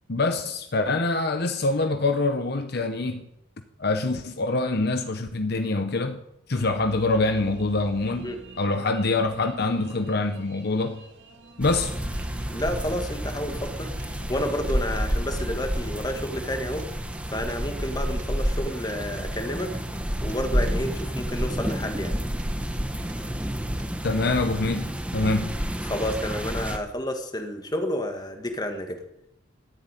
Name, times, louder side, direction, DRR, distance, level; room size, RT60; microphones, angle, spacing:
voice 1, 0.1-3.3 3.8-6.2 6.5-11.0 11.6-11.9 24.0-25.5, left 2 dB, 50° left, 8 dB, 0.8 m, -25 dB
sound 1, 6.5-15.7, right 2 dB, 65° right, 2.0 m, -46 dB
sound 2, 11.6-26.8, equal, 5° right, 1.1 m, -30 dB
sound 3, 11.9-23.9, right 1 dB, 40° right, 1.1 m, -41 dB
voice 2, 12.5-13.9 14.3-16.9 17.3-19.8 20.2-22.2 25.8-29.0, left 1 dB, 20° left, 5 dB, 1.7 m, -30 dB
14.0 x 7.9 x 9.1 m, 0.82 s
head